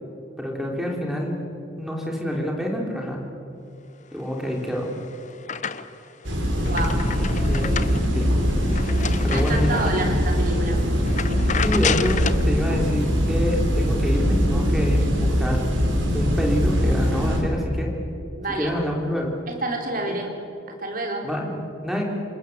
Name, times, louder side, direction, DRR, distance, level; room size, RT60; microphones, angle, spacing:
voice 1, 0.4-1.4 1.8-3.2 4.1-4.9 7.5-7.7 8.1-8.3 9.2-10.1 11.6-15.7 16.1-17.9 18.5-19.4 20.1-20.2 21.2-21.6 21.8-22.0, equal, ahead, -1 dB, 3.6 m, -27 dB
sound 1, 4.6-6.1 6.5-10.1 10.5-10.7 11.1-12.5, left 6 dB, 40° left, 0.8 m, -30 dB
sound 2, 6.2-17.4, equal, 75° right, 4.8 m, -22 dB
voice 2, 6.6-7.1 9.3-10.8 18.4-18.7 19.5-20.3 20.7-21.3, right 2 dB, 45° right, 1 dB, 3.7 m, -29 dB
27.5 x 20.5 x 8.1 m, 2.7 s
head